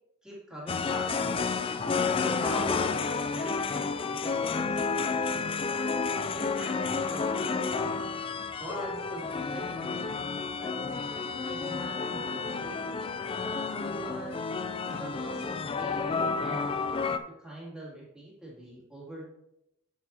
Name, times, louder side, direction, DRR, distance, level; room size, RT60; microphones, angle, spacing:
voice 1, 0.2-1.5 2.2-5.3 6.3-7.7 8.6-10.3 10.6-12.9 13.9-14.4 14.8-16.8 17.4-19.2, equal, 5° right, -7 dB, 2.6 m, -43 dB
sound 1, 0.7-17.2, left 4 dB, 25° left, 0.3 m, -31 dB
8.4 x 8.1 x 2.8 m, 0.84 s
head